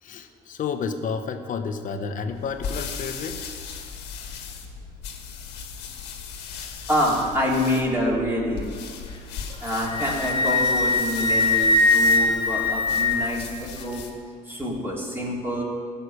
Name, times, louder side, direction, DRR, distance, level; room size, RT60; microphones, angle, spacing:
voice 1, 0.0-3.5, left 5 dB, 50° left, 8 dB, 1.0 m, -31 dB
sound 1, 2.3-14.2, left 6 dB, 85° left, 1.6 m, -37 dB
voice 2, 6.9-8.7 9.6-14.0 14.5-15.6, equal, 15° right, -4 dB, 3.3 m, -26 dB
Wind instrument woodwind instrument, 9.5-13.5, left 2 dB, 25° left, 2.0 m, -21 dB
15.5 x 5.8 x 6.7 m, 2.1 s
cardioid pair, 110°, 17 cm